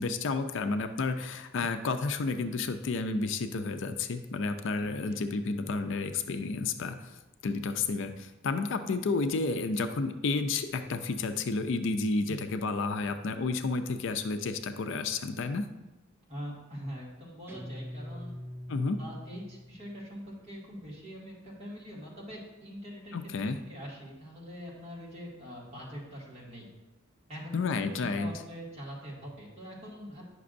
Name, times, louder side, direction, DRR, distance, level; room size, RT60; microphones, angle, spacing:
voice 1, 0.0-7.1 7.4-15.7 18.7-19.0 23.1-23.6 27.5-28.3, left 3 dB, 60° left, 8 dB, 0.4 m, -31 dB
voice 2, 4.8-5.2 12.3-12.4 16.3-18.3 19.0-26.7 27.3-30.2, equal, 30° right, -5 dB, 1.9 m, -43 dB
Guitar, 17.5-20.1, equal, 10° right, 0.3 m, -43 dB
9.4 x 5.9 x 2.5 m, 1.0 s
head